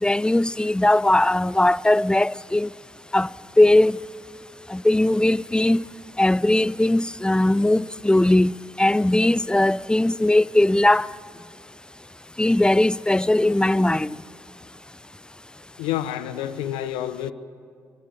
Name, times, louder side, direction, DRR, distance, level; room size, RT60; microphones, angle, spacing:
voice 1, 0.0-2.7 3.1-3.3 3.6-4.0 4.7-5.8 6.2-11.1 12.4-14.2, left 1 dB, 10° left, 0.6 m, -19 dB
voice 2, 15.8-17.3, left 12 dB, 85° left, 1.1 m, -28 dB
25.0 x 22.0 x 9.2 m
hypercardioid pair, 45°, 9 cm